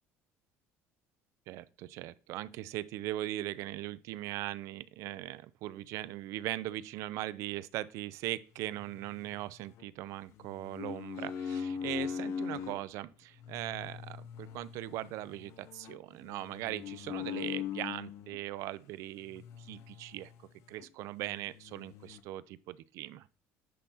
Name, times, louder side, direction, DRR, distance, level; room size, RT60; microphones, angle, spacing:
voice 1, 1.5-20.3 20.7-23.3, right 15 dB, 65° right, 0.5 m, -40 dB
sound 1, 8.6-9.8 10.4-12.8 13.4-18.4 19.3-20.5 20.8-20.9 21.2-22.2, left 7 dB, 60° left, 0.6 m, -41 dB
10.0 x 5.6 x 2.8 m
cardioid pair, 160°, 6 cm